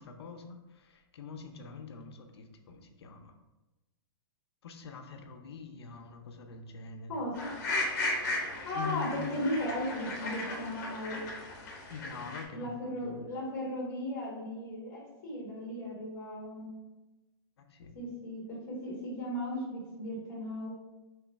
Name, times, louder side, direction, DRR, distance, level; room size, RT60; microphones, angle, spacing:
voice 1, 0.0-3.3 4.6-7.2 8.7-9.2 11.9-13.3 17.6-18.0, left 5 dB, 85° left, 5 dB, 0.6 m, -44 dB
voice 2, 7.1-7.5 8.6-11.2 12.5-16.7 17.9-20.7, left 1 dB, 20° left, -3 dB, 1.2 m, -36 dB
sound 1, 7.3-12.4, left 2 dB, 40° left, 0.9 m, -36 dB
3.2 x 3.1 x 4.4 m, 1.0 s
hypercardioid pair, 175°, 13 cm